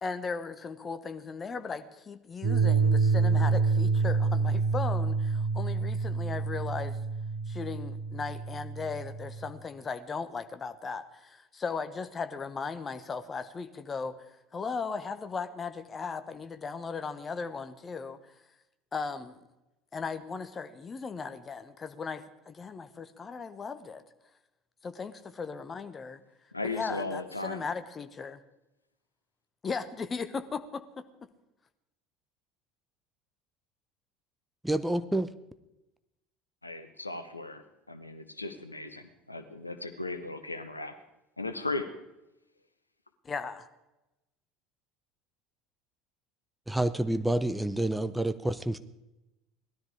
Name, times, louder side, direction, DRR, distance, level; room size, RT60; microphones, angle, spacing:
voice 1, 0.0-7.0 7.5-14.2 14.5-18.3 18.9-19.4 19.9-24.0 24.8-26.2 26.6-28.4 29.6-31.1 43.2-43.7, left 5 dB, 25° left, 10 dB, 1.2 m, -37 dB
sound 1, 2.4-9.5, right 4 dB, 50° right, 6.6 m, -27 dB
voice 2, 26.5-27.6 36.6-40.9 41.4-41.9, left 2 dB, 90° left, 9 dB, 1.0 m, -37 dB
voice 3, 34.6-35.3 46.7-48.8, right 1 dB, 5° right, 12 dB, 0.8 m, -28 dB
18.5 x 13.0 x 4.9 m, 0.95 s
figure-of-eight pair, 65°, 0 cm